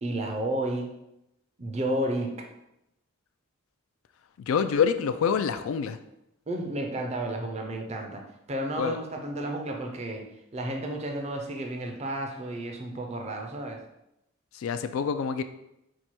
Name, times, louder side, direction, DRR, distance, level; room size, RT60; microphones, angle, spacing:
voice 1, 0.0-0.9 1.6-2.4 6.5-8.2 8.5-13.8, right 1 dB, 30° right, 3 dB, 0.5 m, -32 dB
voice 2, 4.4-6.0 8.8-9.0 14.5-15.4, left 7 dB, 70° left, 10 dB, 0.3 m, -26 dB
4.6 x 2.2 x 4.2 m, 0.86 s
head